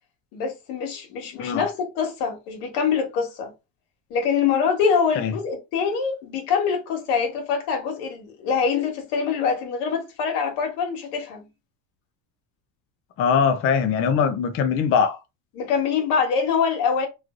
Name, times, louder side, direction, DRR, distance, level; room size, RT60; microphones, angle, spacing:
voice 1, 0.3-3.5 4.1-11.5 15.5-17.1, left 6 dB, 80° left, 1.4 m, -24 dB
voice 2, 13.2-15.2, left 6 dB, 30° left, 0.4 m, -21 dB
3.1 x 2.4 x 2.5 m
supercardioid pair, 115°, 47 cm